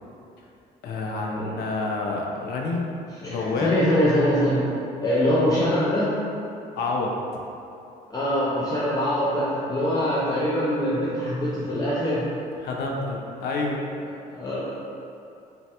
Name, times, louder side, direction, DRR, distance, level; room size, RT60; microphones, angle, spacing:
voice 1, 0.8-2.9 3.2-3.7 6.7-7.1 12.6-13.8, left 3 dB, 70° left, -1 dB, 0.5 m, -28 dB
voice 2, 3.2-4.6 5.0-6.1 8.1-12.2 14.3-14.7, equal, 20° left, -9 dB, 0.4 m, -23 dB
3.2 x 2.1 x 2.8 m, 2.6 s
cardioid pair, 110°, 17 cm